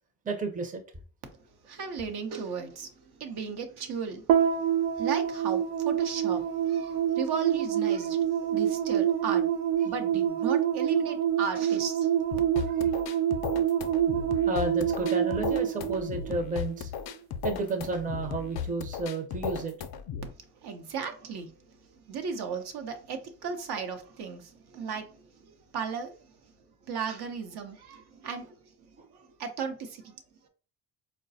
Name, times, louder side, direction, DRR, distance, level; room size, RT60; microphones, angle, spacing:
voice 1, 0.2-0.8 7.1-7.2 7.9-8.0 9.8-9.9 12.7-12.9 14.5-16.9 17.4-19.8 29.0-29.1, right 3 dB, 20° right, 0.6 m, -32 dB
voice 2, 1.6-2.9 3.2-4.2 4.6-4.7 5.0-6.4 6.7-9.4 9.8-12.4 20.6-21.5 22.1-25.5 25.7-26.2 26.8-28.6 29.1-30.2, right 6 dB, 60° right, 0.8 m, -35 dB
sound 1, 4.3-16.8, right 10 dB, 90° right, 0.5 m, -27 dB
sound 2, 12.3-20.3, left 7 dB, 60° left, 0.5 m, -36 dB
3.9 x 2.2 x 2.6 m
supercardioid pair, 75°, 44 cm